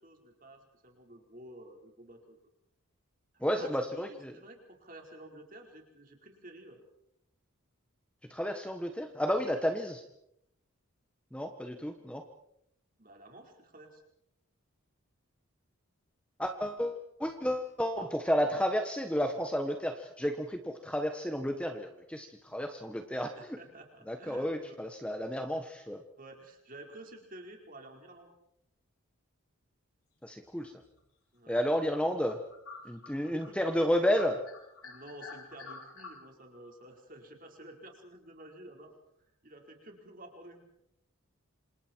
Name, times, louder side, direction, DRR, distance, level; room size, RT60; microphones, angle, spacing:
voice 1, 0.0-2.4 3.5-6.8 11.7-12.0 13.0-14.0 23.3-24.8 26.2-28.3 31.3-31.6 32.8-33.6 34.8-38.9 39.4-40.6, right 1 dB, 40° right, 2 dB, 4.7 m, -51 dB
voice 2, 3.4-4.3 8.3-10.0 11.3-12.2 16.4-23.3 24.1-26.0 30.2-30.7 31.5-32.4 32.8-34.4, equal, 5° left, 5 dB, 1.3 m, -31 dB
sound 1, 30.6-31.0 31.5-31.6 31.9-33.9 34.2-36.1, left 4 dB, 75° left, 6.3 m, -48 dB
28.0 x 27.0 x 4.6 m, 0.77 s
head